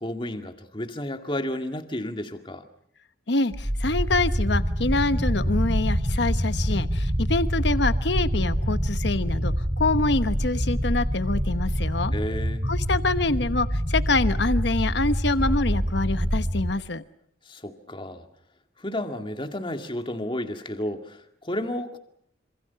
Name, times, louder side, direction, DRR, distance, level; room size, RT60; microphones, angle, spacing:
voice 1, 0.0-2.6 12.1-12.6 17.5-18.2 18.8-22.0, left 1 dB, 25° left, 2.1 m, -32 dB
voice 2, 3.3-12.1 12.6-17.0, left 2 dB, 60° left, 1.1 m, -26 dB
sound 1, 3.5-16.7, equal, 25° right, 1.8 m, -26 dB
27.5 x 27.0 x 5.8 m
head